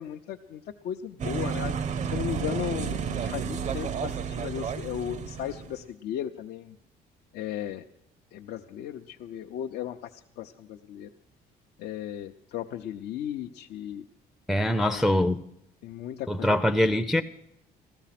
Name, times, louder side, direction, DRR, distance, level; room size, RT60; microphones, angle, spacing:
voice 1, 0.0-6.8 7.3-7.8 8.3-11.1 11.8-14.0 14.7-15.1 15.8-16.6, left 10 dB, 75° left, 0.6 m, -36 dB
sound 1, 1.2-5.8, right 7 dB, 45° right, 0.6 m, -31 dB
voice 2, 14.5-15.4 16.3-17.2, left 1 dB, ahead, 0.5 m, -23 dB
15.5 x 13.5 x 5.9 m
cardioid pair, 110°, 17 cm